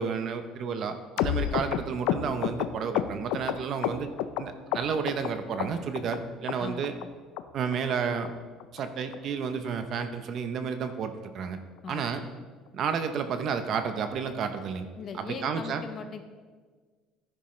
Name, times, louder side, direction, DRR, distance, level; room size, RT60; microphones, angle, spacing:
voice 1, 0.0-4.1 4.4-6.9 7.5-8.3 8.7-11.6 11.9-12.2 12.7-14.9 15.1-15.8, right 6 dB, 40° right, 8 dB, 0.7 m, -31 dB
sound 1, 1.2-4.4 4.7-5.3 5.6-6.2 6.5-6.6 6.8-7.1 7.4-7.5 7.7-7.9 8.2-8.3 8.6-8.8 9.1-9.2 9.5-9.7 10.0-10.1 10.4-10.6 10.9-11.0, left 12 dB, 75° left, 0.5 m, -30 dB
voice 2, 6.6-6.9 11.8-12.1 15.0-16.2, left 5 dB, 30° left, 7 dB, 0.8 m, -39 dB
15.5 x 10.0 x 3.2 m, 1.5 s
cardioid pair, 170°, 0 cm